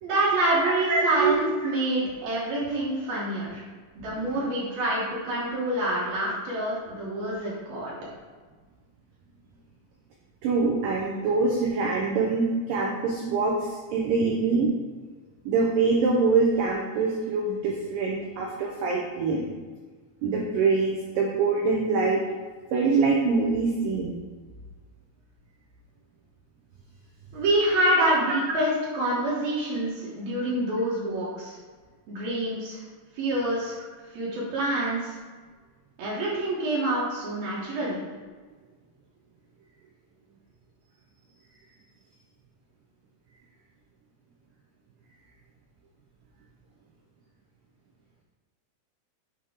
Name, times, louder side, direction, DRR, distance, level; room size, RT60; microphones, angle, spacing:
voice 1, 0.0-3.6 4.0-7.9 27.3-31.6 32.1-32.8 33.2-33.8 34.1-35.1 36.0-38.0, right 1 dB, 70° right, -7 dB, 2.6 m, -26 dB
voice 2, 0.6-1.4 4.0-4.4 10.4-14.7 15.5-19.5 20.2-22.2 22.7-24.1, right 4 dB, 90° right, -1 dB, 1.9 m, -24 dB
7.8 x 2.9 x 4.8 m, 1.4 s
omnidirectional pair, 4.8 m